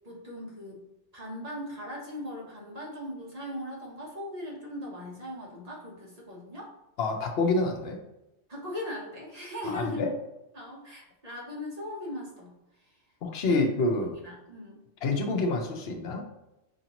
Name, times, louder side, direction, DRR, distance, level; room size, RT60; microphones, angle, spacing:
voice 1, 0.0-0.8 1.1-6.7 8.5-10.1 10.5-13.0 13.5-13.7 14.0-14.8, left 1 dB, 35° right, -2 dB, 1.0 m, -39 dB
voice 2, 7.0-8.0 9.6-10.1 13.2-14.1 15.0-16.2, left 3 dB, 65° left, 3 dB, 0.9 m, -27 dB
5.0 x 2.6 x 2.8 m, 0.94 s
omnidirectional pair, 1.2 m